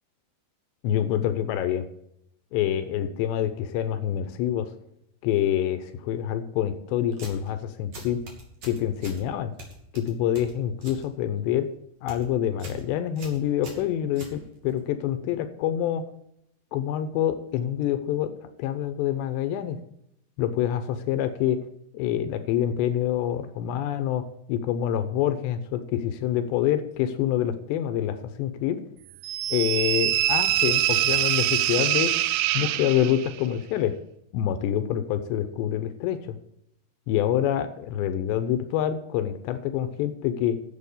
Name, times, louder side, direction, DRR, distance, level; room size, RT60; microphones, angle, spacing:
voice 1, 0.8-1.9 2.5-4.7 5.2-8.2 8.6-9.5 9.9-11.7 12.0-16.0 16.7-18.3 18.6-19.8 20.4-21.6 21.9-24.2 24.5-28.8 29.5-32.1 32.5-33.9 34.3-36.4 37.1-40.6, left 11 dB, 85° left, 10 dB, 3.0 m, -26 dB
sound 1, 7.1-7.5 7.9-9.2 9.6-11.0 11.4-11.7 12.0-12.2 12.6-12.8 13.2-14.8, right 1 dB, 45° right, 3.3 m, -43 dB
sound 2, 29.2-33.4, right 14 dB, 85° right, 2.1 m, -24 dB
10.5 x 7.6 x 6.7 m, 0.76 s
omnidirectional pair, 5.0 m